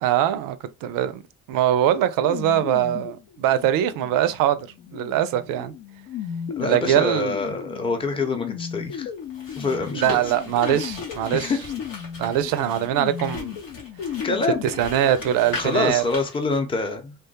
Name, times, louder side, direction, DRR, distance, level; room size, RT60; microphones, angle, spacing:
voice 1, 0.0-1.2 1.5-4.7 4.9-5.7 6.6-7.3 9.9-11.5 12.2-13.6 14.8-16.0, right 11 dB, 60° right, 0.5 m, -22 dB
sound 1, 2.2-15.9, left 8 dB, 50° left, 0.6 m, -35 dB
voice 2, 6.6-9.1 9.6-10.3 11.3-11.6 14.2-14.6 15.6-17.2, left 3 dB, 15° left, 0.7 m, -26 dB
sound 2, 8.8-16.6, left 3 dB, 90° left, 0.9 m, -39 dB
3.1 x 2.2 x 2.7 m
figure-of-eight pair, 45°, 38 cm